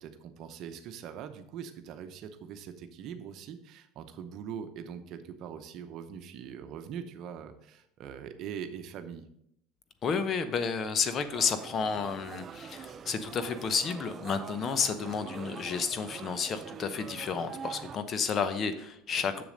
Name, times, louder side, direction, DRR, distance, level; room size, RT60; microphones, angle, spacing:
voice 1, 0.0-9.3, right 8 dB, 55° right, 9 dB, 0.8 m, -42 dB
voice 2, 10.0-19.4, left 5 dB, 40° left, 10 dB, 0.8 m, -31 dB
sound 1, 11.3-18.0, right 7 dB, 35° right, 0.4 m, -44 dB
7.0 x 6.9 x 3.9 m, 0.74 s
hypercardioid pair, 90°, 0 cm